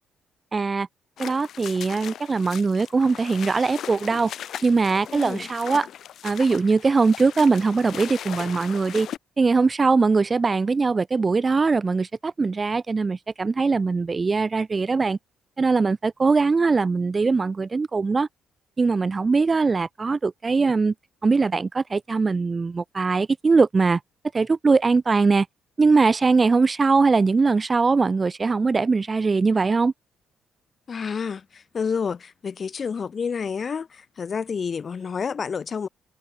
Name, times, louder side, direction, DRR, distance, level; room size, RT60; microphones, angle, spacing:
voice 1, 0.5-0.9 1.2-4.3 4.6-5.9 6.2-9.1 9.4-15.2 15.6-18.3 18.8-20.9 21.2-24.0 24.3-25.5 25.8-29.9, right 4 dB, 25° right, 0.6 m, -21 dB
sound 1, 1.2-9.2, left 10 dB, 65° left, 1.0 m, -38 dB
voice 2, 5.1-5.5 30.9-35.9, left 6 dB, 35° left, 1.1 m, -29 dB
cardioid pair, 125°, 0 cm